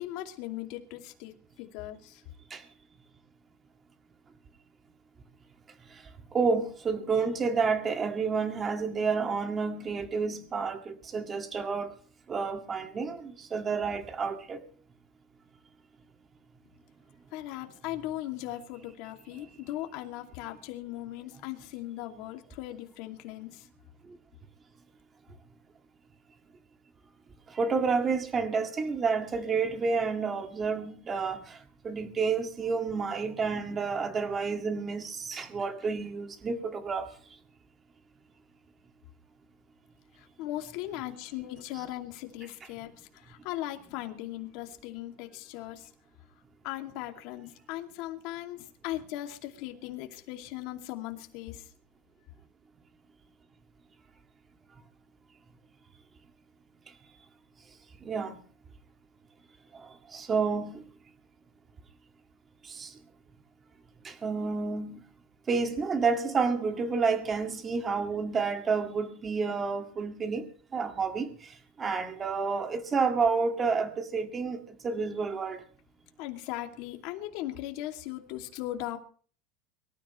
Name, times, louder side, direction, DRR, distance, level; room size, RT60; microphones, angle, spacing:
voice 1, 0.0-1.3 1.6-2.2 17.3-23.7 40.4-45.9 46.6-51.6 76.2-79.0, left 14 dB, 55° left, 2.4 m, -38 dB
voice 2, 6.3-11.9 12.3-14.6 27.5-31.6 31.8-37.1 41.7-41.8 58.0-58.4 60.1-60.8 62.7-62.9 64.0-65.0 65.5-70.5 70.7-71.5 71.8-75.6, right 5 dB, 20° right, 2.0 m, -30 dB
24.5 x 13.5 x 3.2 m
supercardioid pair, 155°, 0 cm